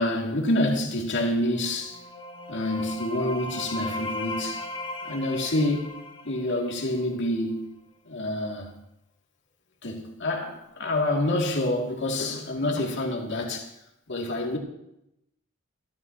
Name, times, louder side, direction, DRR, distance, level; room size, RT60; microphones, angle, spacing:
voice 1, 0.0-2.0 2.5-4.6 5.0-5.9 6.2-7.7 8.0-8.7 9.8-13.7 14.1-14.6, left 1 dB, 60° left, 2.7 m, -27 dB
sound 1, 1.5-7.2, left 1 dB, 20° left, 2.0 m, -37 dB
26.5 x 12.0 x 3.0 m
head